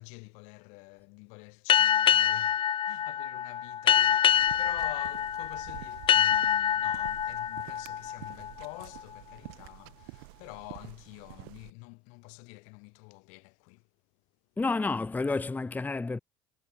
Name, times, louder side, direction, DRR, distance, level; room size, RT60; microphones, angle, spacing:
voice 1, 0.0-13.9, left 33 dB, 80° left, 4.0 m, -48 dB
sound 1, 1.7-9.0, left 9 dB, 45° left, 1.3 m, -26 dB
sound 2, 4.3-11.7, right 31 dB, 85° right, 5.0 m, -49 dB
voice 2, 14.6-16.2, left 3 dB, 15° left, 0.7 m, -30 dB
supercardioid pair, 95°, 12 cm